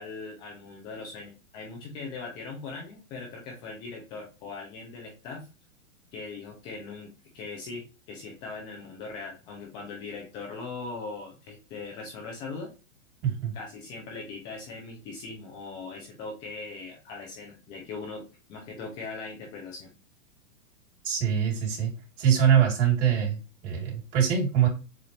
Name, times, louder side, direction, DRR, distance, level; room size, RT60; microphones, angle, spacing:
voice 1, 0.0-5.5 6.1-12.7 13.5-19.9, left 4 dB, 10° left, 0 dB, 0.3 m, -40 dB
voice 2, 13.2-13.5 21.0-21.9 22.2-24.7, right 8 dB, 50° right, -1 dB, 2.8 m, -23 dB
7.0 x 2.4 x 3.1 m, 0.32 s
hypercardioid pair, 135°, 41 cm